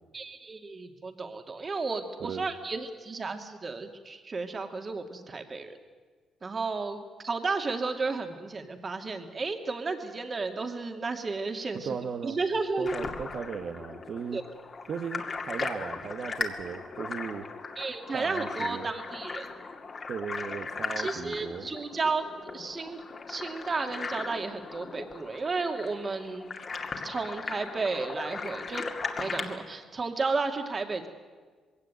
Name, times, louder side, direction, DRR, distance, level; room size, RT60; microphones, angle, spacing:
voice 1, 0.1-5.8 6.4-12.0 12.2-12.9 14.3-14.4 17.8-19.5 21.0-22.3 22.5-26.5 27.0-28.9 29.2-31.1, right 4 dB, 35° right, 6 dB, 2.4 m, -33 dB
voice 2, 11.7-12.4 12.8-14.4 14.9-17.5 18.1-18.9 20.1-21.7, right 6 dB, 60° right, 4 dB, 1.2 m, -37 dB
sound 1, 12.8-29.6, left 4 dB, 40° left, 2.3 m, -38 dB
21.0 x 17.0 x 9.2 m, 1.5 s
cardioid pair, 90°, 0 cm